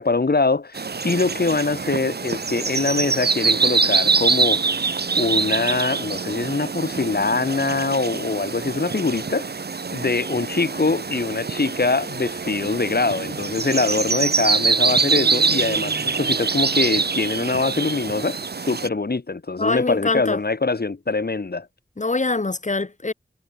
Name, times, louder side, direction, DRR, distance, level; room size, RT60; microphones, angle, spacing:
voice 1, 0.0-4.8 5.2-9.5 9.9-21.7, left 3 dB, 70° left, 7.9 m, -23 dB
sound 1, 0.7-18.9, right 4 dB, 80° right, 1.5 m, -24 dB
voice 2, 19.6-20.4 22.0-23.1, left 3 dB, 45° left, 1.9 m, -24 dB
wide cardioid pair, 50°, 17 cm